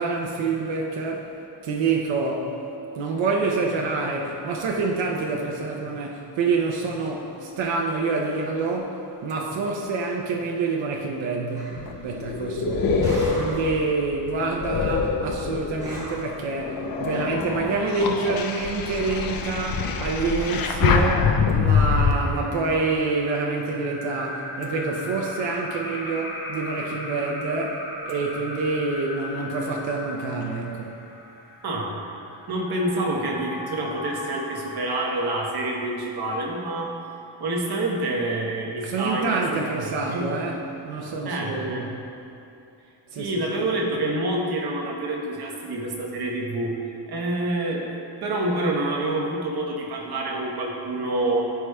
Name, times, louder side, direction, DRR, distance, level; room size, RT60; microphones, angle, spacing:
voice 1, 0.0-1.3 1.6-2.6 3.0-13.0 13.3-31.0 38.8-40.6 40.9-41.9 43.1-43.4, right 3 dB, 85° right, 0 dB, 0.7 m, -27 dB
sound 1, 11.5-11.9 13.0-13.8 15.8-16.4, equal, 10° right, 1.3 m, -37 dB
sound 2, 11.7-16.0 16.5-22.1, left 5 dB, 50° left, 0.5 m, -25 dB
sound 3, 18.3-35.6, left 1 dB, 25° left, 1.2 m, -39 dB
voice 2, 32.5-36.9 37.4-40.3 41.2-41.9 43.2-46.8 47.1-47.9 48.2-51.5, right 1 dB, 55° right, -2 dB, 1.1 m, -27 dB
14.0 x 4.8 x 2.3 m, 2.8 s
wide cardioid pair, 175°, 44 cm